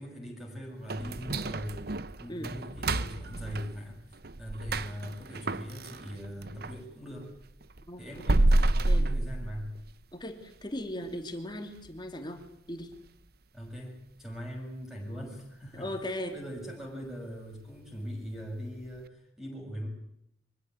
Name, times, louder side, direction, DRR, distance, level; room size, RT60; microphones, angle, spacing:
voice 1, 0.0-4.0 4.4-7.3 8.0-9.7 13.5-15.9 16.3-19.9, equal, ahead, -2 dB, 7.3 m, -41 dB
sound 1, 0.9-6.8 7.2-10.0 10.4-10.5 11.0-11.1 11.6-11.9 12.3-12.4 12.9-13.0, right 2 dB, 55° right, 1.0 m, -30 dB
voice 2, 10.1-12.9 15.7-16.4, left 1 dB, 25° left, 5 dB, 2.8 m, -38 dB
25.0 x 16.5 x 9.7 m, 0.76 s
head